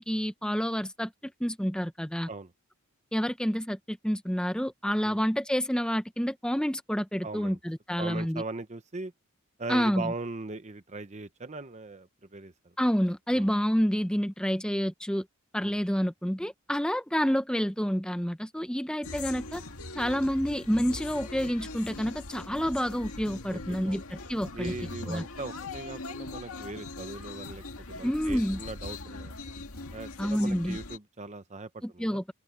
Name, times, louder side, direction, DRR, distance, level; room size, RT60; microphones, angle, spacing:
voice 1, 0.0-2.3 3.1-8.4 9.7-10.1 12.8-15.2 15.5-19.6 19.9-24.7 25.1-25.2 28.0-28.6 30.2-30.8 31.8-32.3, equal, 5° left, 1.0 m, -29 dB
voice 2, 7.2-7.6 8.0-9.1 9.6-12.7 13.3-13.5 15.6-15.8 23.5-24.0 24.5-29.3 29.9-32.2, right 3 dB, 35° right, 0.9 m, -39 dB
sound 1, 19.0-31.0, left 3 dB, 80° left, 2.1 m, -41 dB
head